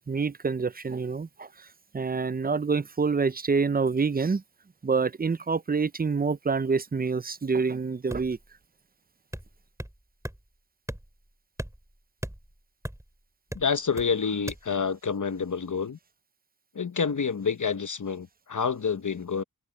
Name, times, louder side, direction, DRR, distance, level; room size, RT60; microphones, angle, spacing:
voice 1, 0.0-1.5 1.9-4.4 4.8-8.4, right 4 dB, 25° right, 0.5 m, -27 dB
sound 1, 8.1-8.5 9.3-10.0 10.2-10.4 10.9-11.3 11.6-13.1 13.5-14.1 14.5-14.6, right 1 dB, 10° right, 3.0 m, -38 dB
voice 2, 13.5-16.0 16.7-19.4, left 6 dB, 60° left, 1.0 m, -28 dB
wide cardioid pair, 65°, 35 cm